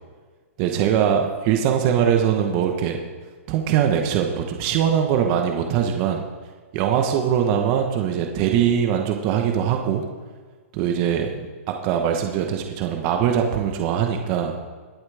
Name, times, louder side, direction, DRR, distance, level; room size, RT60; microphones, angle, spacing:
voice 1, 0.6-3.0 3.5-6.2 6.7-10.0 10.7-14.5, right 8 dB, 35° right, 3 dB, 1.1 m, -22 dB
21.0 x 7.9 x 3.5 m, 1.5 s
hypercardioid pair, 150°, 8 cm